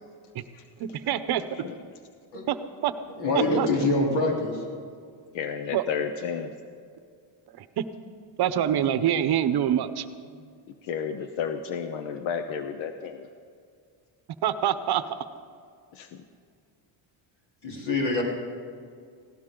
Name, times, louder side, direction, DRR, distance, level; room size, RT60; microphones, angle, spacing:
voice 1, 0.8-1.4 2.5-2.6 2.8-2.9 3.3-3.7 5.7-5.8 8.4-10.1 14.4-15.0, right 10 dB, 55° right, 12 dB, 0.8 m, -25 dB
voice 2, 1.3-1.7 5.3-6.5 10.8-13.3 15.9-16.2, left 7 dB, 80° left, 8 dB, 0.9 m, -32 dB
voice 3, 3.2-4.6 17.6-18.2, left 2 dB, 60° left, -2 dB, 3.8 m, -25 dB
19.0 x 17.0 x 3.8 m, 2.2 s
cardioid pair, 125°, 47 cm